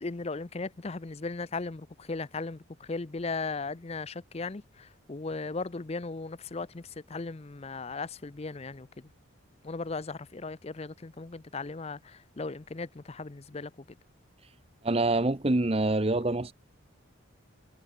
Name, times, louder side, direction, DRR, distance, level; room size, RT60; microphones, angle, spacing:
voice 1, 0.0-9.1 9.6-13.7, left 3 dB, 30° left, 0.5 m, -37 dB
voice 2, 14.8-16.5, right 2 dB, 30° right, 0.8 m, -26 dB
head